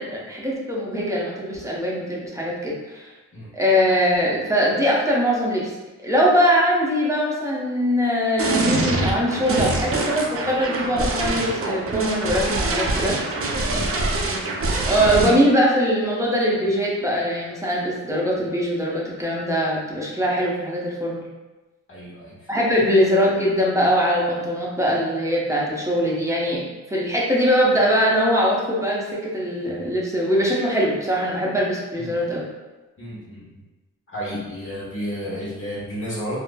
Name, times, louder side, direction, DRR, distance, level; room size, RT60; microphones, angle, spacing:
voice 1, 0.0-3.1 3.5-5.7 6.0-13.2 14.9-21.2 22.5-32.5, equal, 10° right, -4 dB, 0.7 m, -22 dB
sound 1, 8.4-15.4, right 2 dB, 45° right, 0.5 m, -24 dB
voice 2, 21.9-22.5 31.9-32.2 33.0-33.5 34.1-36.4, equal, 40° left, -8 dB, 1.0 m, -32 dB
3.1 x 2.0 x 2.2 m, 1.1 s
cardioid pair, 45°, 33 cm